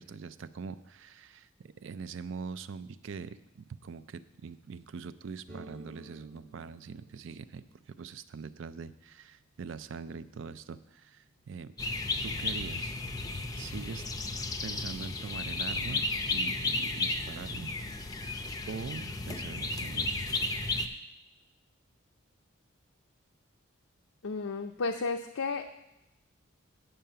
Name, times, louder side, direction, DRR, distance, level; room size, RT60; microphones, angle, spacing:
voice 1, 0.0-11.7 12.2-12.9 13.6-14.0 14.6-17.7 18.7-20.3, right 5 dB, 65° right, 14 dB, 0.4 m, -43 dB
sound 1, 5.5-13.1, right 2 dB, 45° right, 1.1 m, -57 dB
sound 2, 11.8-20.9, left 2 dB, 20° left, 0.5 m, -33 dB
voice 2, 24.2-25.7, left 4 dB, 80° left, 4 dB, 0.5 m, -33 dB
9.0 x 5.6 x 6.8 m, 0.86 s
head